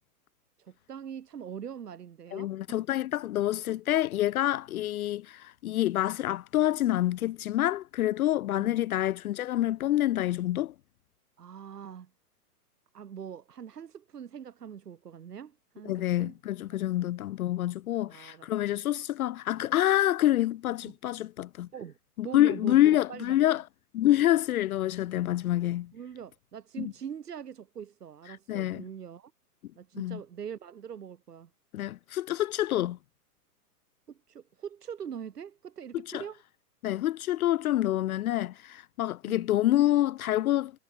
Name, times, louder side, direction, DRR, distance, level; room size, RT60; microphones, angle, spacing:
voice 1, 0.6-2.8 8.6-8.9 11.4-12.1 12.9-16.4 17.0-17.1 18.1-18.8 20.8-21.0 21.7-23.6 25.9-29.3 29.8-31.5 34.1-36.4 39.2-39.5, right 8 dB, 85° right, 3.5 m, -43 dB
voice 2, 2.3-10.7 15.9-21.7 22.2-23.6 23.9-25.9 26.8-26.9 28.5-28.8 29.9-30.2 31.7-33.0 36.1-36.2 36.8-40.7, left 14 dB, 65° left, 0.6 m, -27 dB
hypercardioid pair, 150°, 46 cm